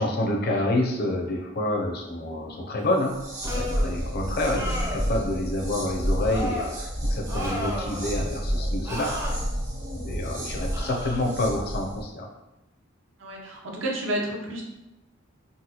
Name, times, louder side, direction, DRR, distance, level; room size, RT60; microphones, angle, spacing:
voice 1, 0.0-3.1 3.5-9.1 9.9-12.3, left 1 dB, 50° left, 1 dB, 0.5 m, -28 dB
sound 1, 3.0-12.0, equal, 40° right, 0.8 m, -30 dB
sound 2, 3.4-3.9 4.4-5.1 6.2-6.7 7.3-8.1 8.8-9.3 10.7-11.2, left 1 dB, 15° right, 0.5 m, -33 dB
voice 2, 13.2-14.6, right 1 dB, 70° right, -1 dB, 0.7 m, -31 dB
3.9 x 2.1 x 2.9 m, 0.96 s
head